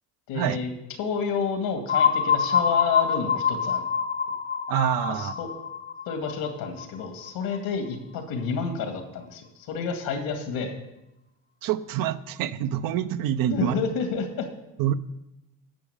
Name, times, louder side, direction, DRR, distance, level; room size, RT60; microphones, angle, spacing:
voice 1, 0.3-0.7 1.0-3.9 5.1-5.5 6.1-10.7 13.5-14.5, left 5 dB, 85° left, 5 dB, 2.1 m, -30 dB
sound 1, 1.9-7.6, left 7 dB, 30° left, 0.7 m, -26 dB
voice 2, 4.7-5.3 11.6-13.8 14.8-14.9, right 11 dB, 70° right, 14 dB, 0.7 m, -26 dB
10.5 x 7.1 x 7.1 m, 0.92 s
cardioid pair, 130°, 35 cm